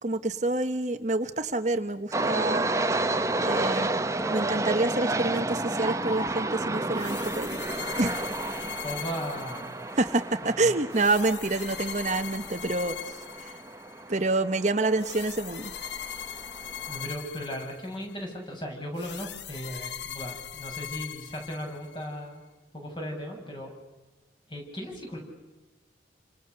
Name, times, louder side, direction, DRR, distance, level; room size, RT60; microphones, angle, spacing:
voice 1, 0.0-2.7 3.4-3.9 4.3-7.5 8.0-8.2 9.9-13.6 14.1-15.7, right 2 dB, 40° right, 8 dB, 1.0 m, -27 dB
sound 1, 2.1-17.1, right 2 dB, 15° right, 1.0 m, -31 dB
sound 2, 6.9-10.1 10.9-14.0 15.0-18.1 19.0-22.1, left 9 dB, 75° left, 1.1 m, -40 dB
voice 2, 8.8-9.7 10.6-10.7 16.9-22.4 22.7-23.7 24.5-25.2, equal, 25° left, 1 dB, 7.4 m, -37 dB
29.5 x 26.5 x 6.8 m, 1.1 s
head